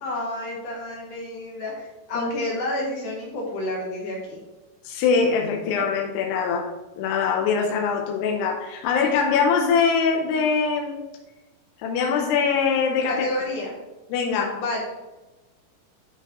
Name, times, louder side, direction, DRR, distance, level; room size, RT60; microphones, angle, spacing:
voice 1, 0.0-4.4 13.0-13.7 14.5-14.8, left 1 dB, 60° left, -2 dB, 2.6 m, -30 dB
voice 2, 4.8-6.7 7.0-11.0 11.8-13.3 14.1-14.6, left 5 dB, 85° left, 1 dB, 2.8 m, -23 dB
11.0 x 5.0 x 3.0 m, 1.1 s
omnidirectional pair, 4.7 m